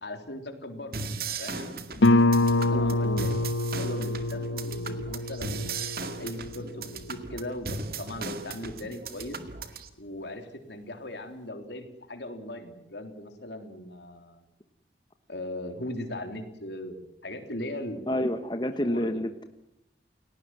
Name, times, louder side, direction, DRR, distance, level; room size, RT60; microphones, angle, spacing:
voice 1, 0.0-1.0 1.4-1.8 2.5-5.7 6.0-9.4 10.0-14.4 15.3-18.2 18.8-19.2, left 1 dB, 70° left, 6 dB, 3.5 m, -39 dB
sound 1, 0.9-9.9, right 4 dB, 55° right, 2.1 m, -37 dB
Guitar, 2.0-7.4, left 2 dB, 85° left, 1.1 m, -26 dB
voice 2, 2.7-3.2 18.1-19.4, left 1 dB, 25° left, 7 dB, 1.1 m, -29 dB
29.5 x 18.5 x 7.7 m, 0.82 s
head